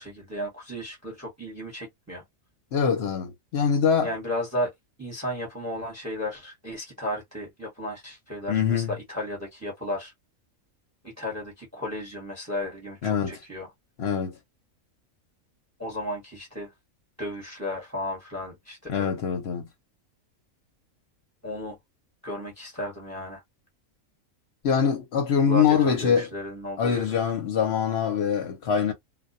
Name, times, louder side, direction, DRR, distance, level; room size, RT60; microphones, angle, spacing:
voice 1, 0.0-2.2 4.0-4.7 5.0-10.1 11.0-13.7 15.8-16.7 17.2-19.1 21.4-21.8 22.2-23.4 25.5-27.2, left 1 dB, 15° right, 0.9 m, -34 dB
voice 2, 2.7-4.1 8.5-8.9 13.0-13.4 14.0-14.4 18.9-19.7 24.6-26.3 26.8-28.9, left 7 dB, 55° left, 0.9 m, -24 dB
2.3 x 2.2 x 2.5 m
omnidirectional pair, 1.4 m